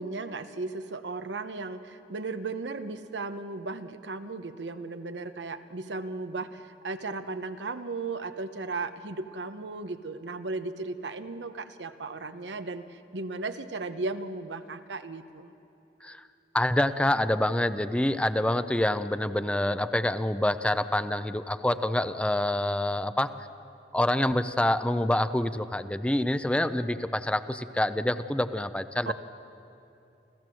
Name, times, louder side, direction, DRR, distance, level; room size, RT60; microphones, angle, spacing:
voice 1, 0.0-15.5 29.0-29.1, right 3 dB, 90° right, 10 dB, 1.0 m, -36 dB
voice 2, 16.5-23.3 23.9-29.1, left 1 dB, 5° left, 12 dB, 0.5 m, -26 dB
29.5 x 14.0 x 7.7 m, 2.8 s
head